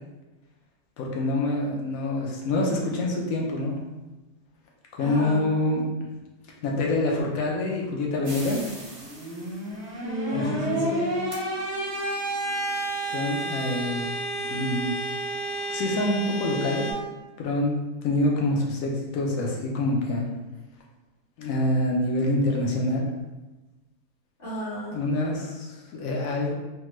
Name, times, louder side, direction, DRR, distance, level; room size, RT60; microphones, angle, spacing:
voice 1, 1.0-3.8 5.0-5.9 6.6-8.8 10.3-10.8 13.1-14.2 14.4-14.9 15.7-17.0 17.4-17.8 18.0-20.3 21.4-23.1 24.9-26.5, left 1 dB, 70° left, -1 dB, 0.9 m, -26 dB
voice 2, 5.0-5.5 10.0-11.3 24.4-25.0, left 1 dB, 35° left, -11 dB, 1.5 m, -33 dB
sound 1, 8.3-16.9, right 2 dB, 60° right, 0.8 m, -31 dB
3.3 x 2.2 x 3.0 m, 1.1 s
omnidirectional pair, 1.7 m